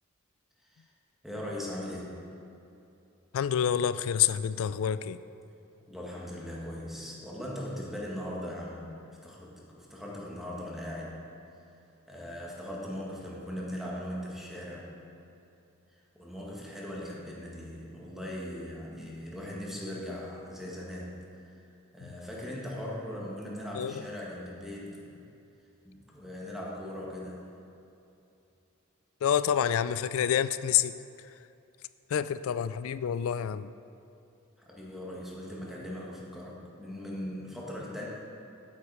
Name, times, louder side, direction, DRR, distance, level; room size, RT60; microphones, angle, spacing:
voice 1, 1.2-2.2 5.9-8.9 9.2-11.2 12.1-14.9 16.1-25.2 25.8-27.5 34.6-38.1, left 1 dB, ahead, 1.6 m, -39 dB
voice 2, 3.3-5.2 22.0-22.1 23.7-23.9 29.2-31.0 32.1-33.7, left 9 dB, 80° left, 0.3 m, -28 dB
8.4 x 8.3 x 4.7 m
head